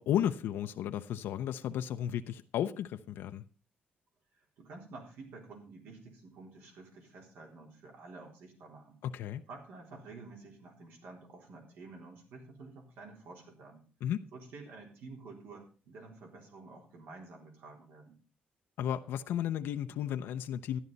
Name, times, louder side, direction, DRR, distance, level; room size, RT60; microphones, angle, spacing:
voice 1, 0.0-3.4 9.0-9.4 14.0-14.2 18.8-20.8, left 10 dB, 85° left, 0.6 m, -34 dB
voice 2, 4.3-9.0 9.5-13.8 14.3-18.2, right 3 dB, 80° right, 3.8 m, -50 dB
13.0 x 11.0 x 4.0 m
cardioid pair, 130°, 4 cm